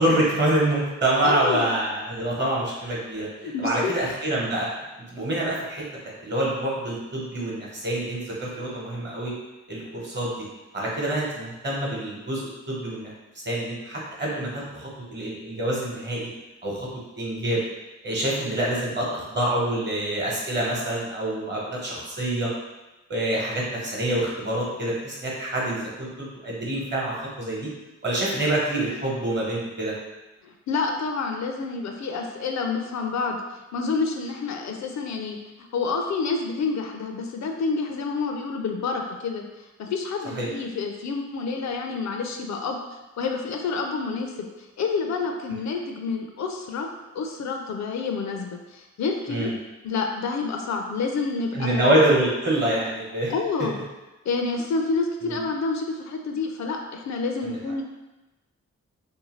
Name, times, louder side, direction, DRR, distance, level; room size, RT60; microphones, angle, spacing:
voice 1, 0.0-4.7 5.1-9.3 9.7-10.5 10.7-16.3 16.6-16.9 17.2-17.6 18.0-22.5 23.1-27.7 28.0-29.9 40.4-40.5 49.3-49.5 51.5-53.3 55.2-55.4 57.4-57.5, right 1 dB, 35° right, -4 dB, 1.0 m, -26 dB
voice 2, 1.2-1.7 3.4-3.9 30.4-42.8 43.2-44.3 44.8-46.9 47.1-49.5 49.8-51.9 53.3-53.8 54.3-57.8, left 4 dB, 65° left, 3 dB, 0.4 m, -28 dB
2.6 x 2.2 x 3.0 m, 1.1 s
cardioid pair, 65°, 30 cm